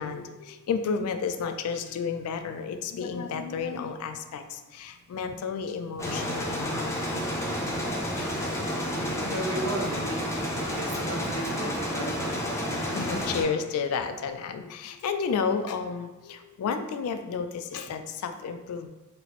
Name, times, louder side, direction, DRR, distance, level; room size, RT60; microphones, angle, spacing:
voice 1, 0.0-7.1 8.2-8.5 11.9-12.5 12.9-18.9, left 5 dB, 80° left, 8 dB, 0.3 m, -32 dB
sound 1, 6.0-13.4, equal, 15° left, 0.5 m, -30 dB
voice 2, 9.1-10.4 10.7-12.7, right 2 dB, 75° right, 2 dB, 0.6 m, -35 dB
4.0 x 2.0 x 2.9 m, 1.1 s
head